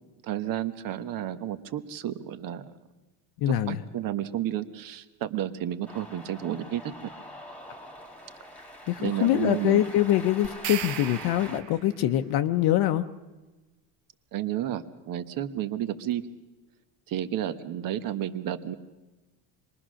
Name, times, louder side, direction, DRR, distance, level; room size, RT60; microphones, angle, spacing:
voice 1, 0.2-2.7 3.5-6.9 9.0-9.8 14.3-16.2 17.1-18.7, right 11 dB, 50° right, 11 dB, 1.3 m, -31 dB
voice 2, 3.4-3.8 8.9-13.0, left 12 dB, 55° left, 8 dB, 0.9 m, -24 dB
Cheering, 5.9-11.6, left 1 dB, 5° left, 1.9 m, -44 dB
sound 1, 10.4-12.0, right 12 dB, 80° right, 1.1 m, -36 dB
26.0 x 21.5 x 6.4 m, 1.1 s
cardioid pair, 150°, 44 cm